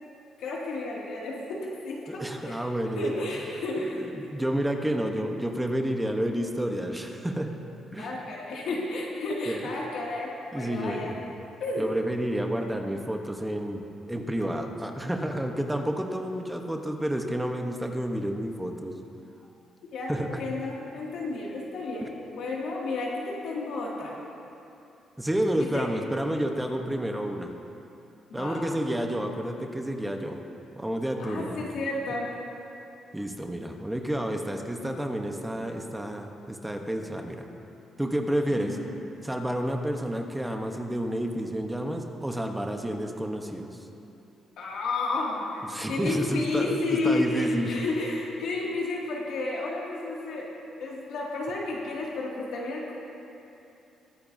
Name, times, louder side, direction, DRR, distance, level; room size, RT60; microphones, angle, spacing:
voice 1, 0.4-1.6 1.8-2.6 3.0-4.0 8.0-11.1 11.6-11.8 19.9-24.1 25.6-25.8 28.3-28.7 31.2-32.3 38.5-38.9 44.6-45.5 45.9-50.5 50.8-52.9, left 2 dB, 75° left, -3 dB, 2.3 m, -31 dB
voice 2, 2.1-3.2 3.9-7.5 7.9-8.1 9.5-9.7 10.5-11.2 11.8-19.0 20.1-20.4 22.0-22.1 25.2-27.5 28.3-30.4 30.7-31.6 33.1-37.5 38.0-38.8 39.2-43.9 45.6-47.8, right 1 dB, 10° right, 3 dB, 1.0 m, -30 dB
20.5 x 9.6 x 2.7 m, 2.8 s
cardioid pair, 90°, 0 cm